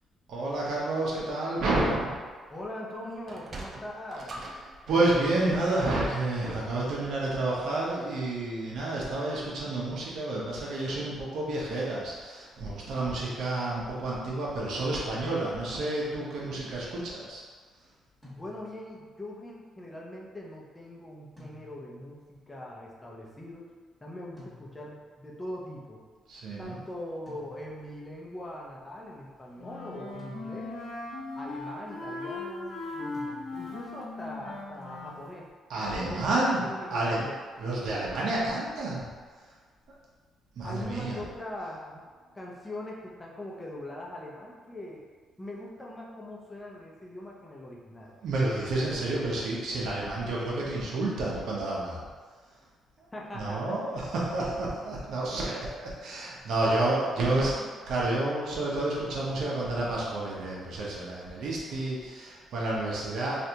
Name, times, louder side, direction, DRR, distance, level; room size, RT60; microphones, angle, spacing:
voice 1, 0.3-2.2 4.9-17.4 26.3-26.8 35.7-37.2 37.6-39.1 40.6-41.2 48.2-52.1 53.3-63.4, right 2 dB, 70° right, -5 dB, 0.7 m, -30 dB
voice 2, 2.5-4.3 18.3-23.7 24.0-26.0 26.6-30.8 31.4-35.5 36.0-37.4 40.6-42.1 42.3-45.0 45.4-48.1 53.1-53.8, left 1 dB, 20° left, -3 dB, 0.7 m, -41 dB
Sliding door, 3.2-7.8, right 2 dB, 40° right, 0.5 m, -45 dB
sound 1, 18.2-19.0 21.4-22.1 24.4-25.1 27.3-28.0 30.2-31.0 33.1-33.9, left 2 dB, 10° right, 1.2 m, -52 dB
Wind instrument woodwind instrument, 29.6-35.2, left 2 dB, 75° left, 0.7 m, -39 dB
3.3 x 2.5 x 2.8 m, 1.5 s
cardioid pair, 90°, 0 cm